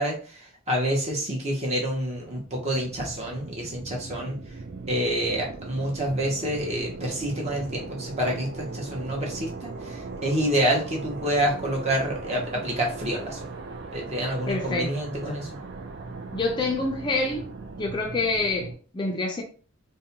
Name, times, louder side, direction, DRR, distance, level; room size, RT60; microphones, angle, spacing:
voice 1, 0.0-4.4 4.9-13.4 13.9-15.5, right 1 dB, 35° right, 0.8 m, -28 dB
sound 1, 2.1-18.7, right 3 dB, 55° right, 0.4 m, -39 dB
voice 2, 14.5-14.9 15.3-15.5 16.3-17.5 17.8-19.4, left 3 dB, 25° left, 0.4 m, -27 dB
2.5 x 2.1 x 2.8 m
head